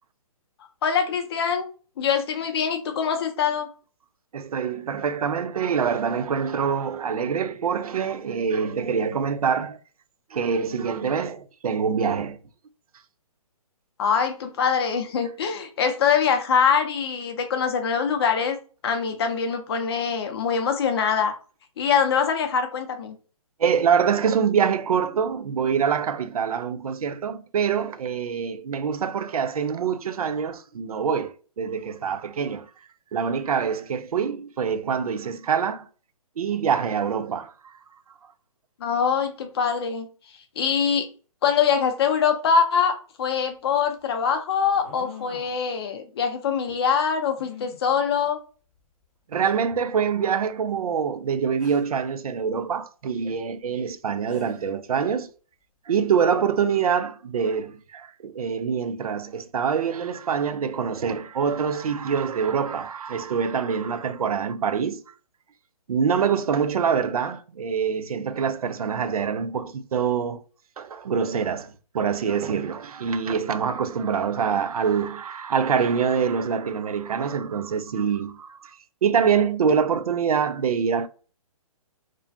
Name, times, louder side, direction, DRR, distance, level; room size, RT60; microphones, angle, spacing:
voice 1, 0.8-1.7 2.0-3.7 14.0-18.6 18.8-21.3 21.8-23.1 38.8-40.1 40.6-41.1 41.4-48.4, left 6 dB, 45° left, 0.6 m, -23 dB
voice 2, 4.3-9.8 10.3-12.4 23.6-32.7 33.1-35.9 36.4-37.7 49.3-55.3 55.9-65.0 65.9-70.4 70.8-81.1, right 7 dB, 80° right, 0.4 m, -25 dB
sound 1, 43.2-43.3 44.7-45.6 47.4-47.8 48.8-48.9 49.4-49.5 51.6-52.0 53.9-54.0 54.3-54.7, left 6 dB, 20° left, 0.8 m, -44 dB
2.5 x 2.2 x 2.5 m
hypercardioid pair, 145°, 19 cm